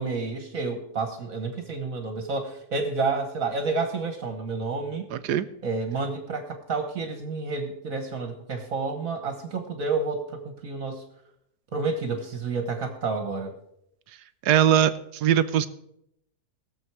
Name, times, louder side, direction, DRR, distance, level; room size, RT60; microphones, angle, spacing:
voice 1, 0.0-5.1 5.6-11.0 11.7-13.6, right 4 dB, 55° right, 6 dB, 1.6 m, -30 dB
voice 2, 5.1-5.5 14.4-15.7, right 10 dB, 80° right, 12 dB, 1.2 m, -21 dB
20.0 x 7.1 x 4.7 m, 0.78 s
omnidirectional pair, 1.8 m